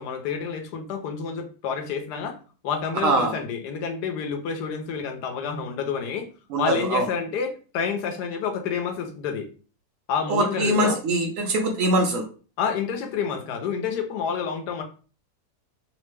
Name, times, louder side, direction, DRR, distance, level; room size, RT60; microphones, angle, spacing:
voice 1, 0.0-2.4 2.6-6.3 6.6-9.5 10.1-11.0 12.6-14.8, left 6 dB, 80° left, 5 dB, 1.2 m, -29 dB
voice 2, 3.0-3.3 6.5-7.1 10.3-12.2, right 2 dB, 70° right, 2 dB, 0.8 m, -22 dB
3.1 x 2.0 x 3.2 m, 0.37 s
omnidirectional pair, 1.7 m